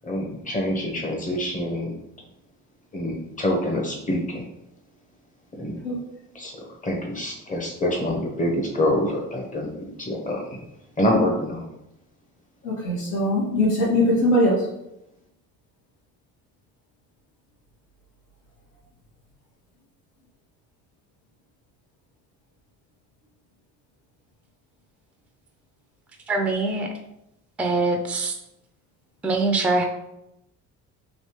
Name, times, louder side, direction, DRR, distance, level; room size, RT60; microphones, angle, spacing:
voice 1, 0.0-1.9 2.9-4.5 5.6-5.8 6.3-9.7 10.0-10.6 11.0-11.6, left 1 dB, 25° left, 0 dB, 0.8 m, -26 dB
voice 2, 12.6-14.6, left 1 dB, 90° left, -6 dB, 1.4 m, -21 dB
voice 3, 26.3-26.9 27.6-28.3 29.2-29.8, right 3 dB, 5° right, 4 dB, 0.3 m, -23 dB
3.2 x 2.8 x 3.0 m, 0.84 s
cardioid pair, 110°, 31 cm